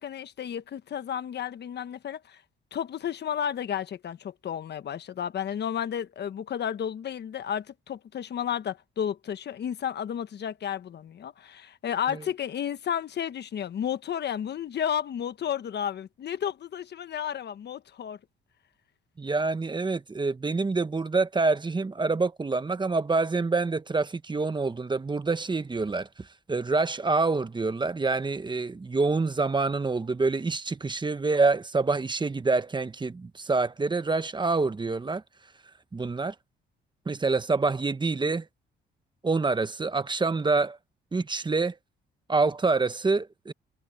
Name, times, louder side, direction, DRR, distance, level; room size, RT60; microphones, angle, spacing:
voice 1, 0.0-2.4 2.7-18.2, left 9 dB, 60° left, 1.3 m, -32 dB
voice 2, 19.2-35.2 35.9-36.3 37.1-38.5 39.2-40.8 41.1-41.7 42.3-43.5, right 3 dB, 25° right, 1.2 m, -26 dB
cardioid pair, 90°, 20 cm